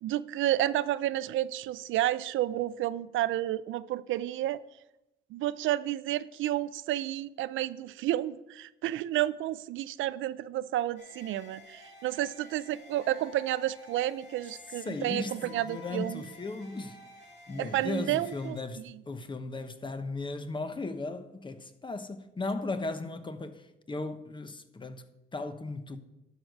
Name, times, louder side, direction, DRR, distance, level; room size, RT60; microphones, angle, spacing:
voice 1, 0.0-4.6 5.3-16.2 17.6-18.8, right 13 dB, 80° right, 0.4 m, -31 dB
sound 1, 11.0-18.5, left 2 dB, 65° left, 3.9 m, -52 dB
voice 2, 14.7-17.0 17.5-26.0, left 3 dB, 25° left, 0.9 m, -37 dB
11.5 x 4.8 x 6.5 m
cardioid pair, 90°, 20 cm